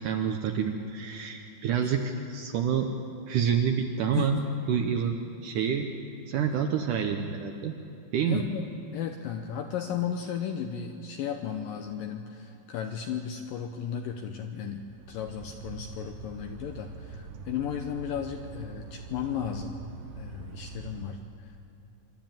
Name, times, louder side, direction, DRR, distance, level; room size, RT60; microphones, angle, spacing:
voice 1, 0.0-2.9 3.3-5.2 5.4-6.0 6.3-7.7 8.1-8.4, right 7 dB, 80° right, 4 dB, 1.8 m, -28 dB
voice 2, 8.3-8.6 8.9-19.8 20.1-21.5, left 8 dB, 80° left, 5 dB, 2.1 m, -35 dB
sound 1, 14.7-21.0, right 4 dB, 65° right, 2.2 m, -43 dB
25.5 x 12.5 x 9.0 m, 2.7 s
omnidirectional pair, 4.8 m